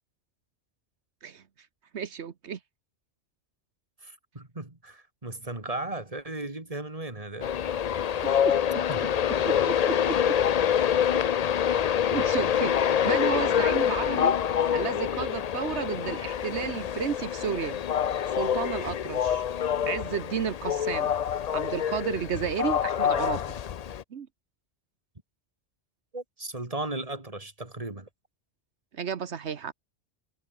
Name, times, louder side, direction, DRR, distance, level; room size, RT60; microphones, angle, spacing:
voice 1, 1.9-2.6 8.2-8.6 9.4-10.2 12.1-14.3 14.7-17.8 18.3-19.4 19.8-21.1 21.5-23.4 24.1-24.3 28.9-29.7, right 7 dB, 80° right, 1.4 m, -32 dB
voice 2, 4.0-7.6 8.9-9.1 26.1-28.1, right 2 dB, 30° right, 3.1 m, -36 dB
Train, 7.4-24.0, left 9 dB, 50° left, 0.5 m, -26 dB
omnidirectional pair, 1.1 m